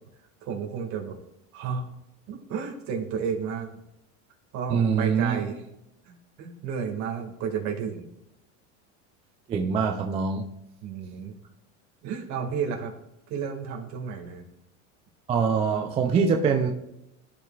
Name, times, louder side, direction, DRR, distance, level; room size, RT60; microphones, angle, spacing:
voice 1, 0.4-1.2 1.5-1.9 2.3-3.7 4.5-5.6 6.1-6.2 6.4-8.1 10.8-11.4 12.0-12.9 13.3-14.4, right 6 dB, 50° right, 1 dB, 1.8 m, -32 dB
voice 2, 4.7-5.4 9.5-10.5 15.3-16.7, right 6 dB, 20° right, 3 dB, 0.3 m, -24 dB
14.0 x 5.5 x 2.3 m, 0.85 s
supercardioid pair, 145°, 37 cm